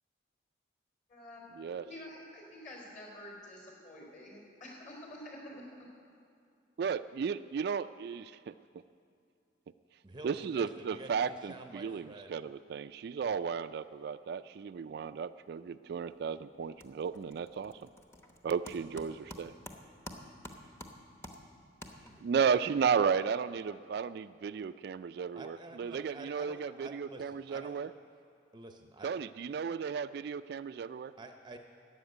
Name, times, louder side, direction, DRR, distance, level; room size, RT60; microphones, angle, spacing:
voice 1, 1.1-1.4 1.8-5.7, left 1 dB, 40° left, -1 dB, 4.2 m, -48 dB
voice 2, 6.8-8.5 10.2-17.8 18.4-19.5 22.2-27.9 29.0-31.1, right 6 dB, 60° right, 13 dB, 0.3 m, -34 dB
voice 3, 10.0-12.4 22.0-22.3 25.4-27.8 28.5-29.1 31.2-31.6, right 2 dB, 25° right, 5 dB, 0.6 m, -49 dB
sound 1, 15.9-16.3 16.6-22.4, equal, 15° left, 1.0 m, -50 dB
13.0 x 8.0 x 9.3 m, 2.4 s
head